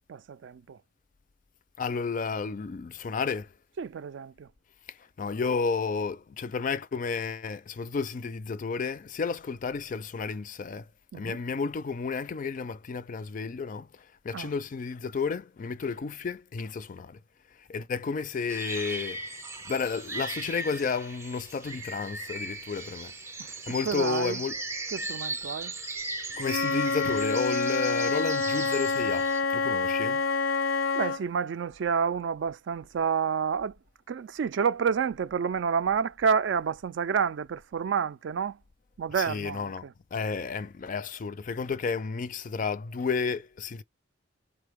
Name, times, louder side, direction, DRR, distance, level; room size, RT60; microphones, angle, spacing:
voice 1, 0.1-0.8 3.8-4.5 11.1-11.4 14.3-14.5 23.4-24.5 24.9-25.7 29.8-29.9 30.9-33.8 34.1-38.6 39.0-39.9, right 6 dB, 65° right, 0.3 m, -29 dB
voice 2, 1.8-3.5 4.9-10.9 11.1-17.2 17.6-19.2 19.6-23.1 23.6-24.5 26.4-30.2 39.2-43.8, left 5 dB, 40° left, 0.3 m, -32 dB
sound 1, 18.5-29.4, right 2 dB, 15° right, 0.5 m, -38 dB
Wind instrument woodwind instrument, 26.4-31.2, left 4 dB, 85° left, 0.6 m, -27 dB
4.0 x 3.7 x 3.4 m
head